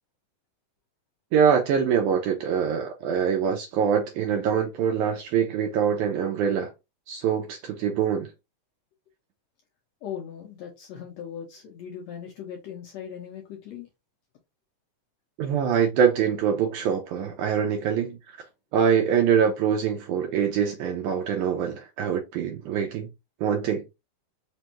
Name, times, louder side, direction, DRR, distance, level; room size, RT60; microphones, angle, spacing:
voice 1, 1.3-6.7 7.1-8.3 15.4-18.2 18.7-23.1 23.4-23.8, right 7 dB, 80° right, 1.9 m, -24 dB
voice 2, 10.0-13.9, left 8 dB, 75° left, 1.7 m, -39 dB
5.1 x 2.3 x 2.9 m
omnidirectional pair, 3.7 m